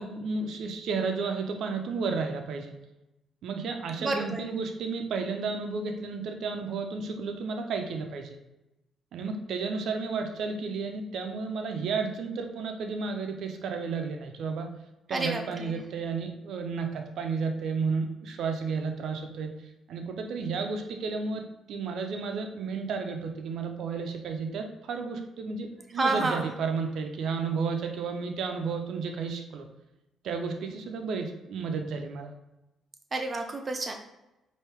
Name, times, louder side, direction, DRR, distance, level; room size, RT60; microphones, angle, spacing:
voice 1, 0.0-2.7 3.4-8.4 9.1-14.7 15.1-29.7 30.2-32.3, right 4 dB, 70° right, 4 dB, 0.5 m, -32 dB
voice 2, 4.0-4.5 15.1-15.8 26.0-26.5 33.1-33.9, right 2 dB, 30° right, 4 dB, 0.6 m, -29 dB
4.5 x 2.7 x 3.3 m, 0.96 s
cardioid pair, 90°, 0 cm